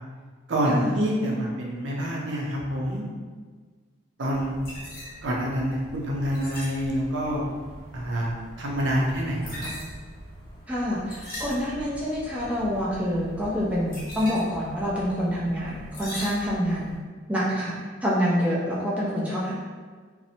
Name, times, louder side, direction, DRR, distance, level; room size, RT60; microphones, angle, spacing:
voice 1, 0.5-3.0 4.2-4.6 5.2-7.5 7.9-9.7, equal, 70° right, -3 dB, 0.5 m, -27 dB
sound 1, 4.3-17.0, equal, 45° left, 0.7 m, -41 dB
voice 2, 10.7-17.0 17.3-17.7 18.0-19.5, equal, 5° right, -8 dB, 0.4 m, -27 dB
2.6 x 2.0 x 2.7 m, 1.5 s
head